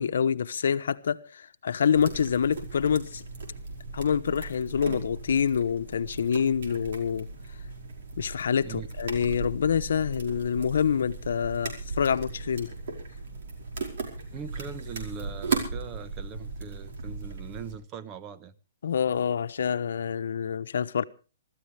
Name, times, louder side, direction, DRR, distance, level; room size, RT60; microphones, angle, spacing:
voice 1, 0.0-3.2 3.9-7.3 8.2-12.7 18.8-21.0, left 7 dB, 80° left, 1.0 m, -26 dB
sound 1, 1.9-17.7, right 4 dB, 65° right, 5.1 m, -37 dB
voice 2, 14.3-18.5, right 7 dB, 20° right, 1.0 m, -41 dB
25.0 x 13.5 x 3.3 m
hypercardioid pair, 160°, 0 cm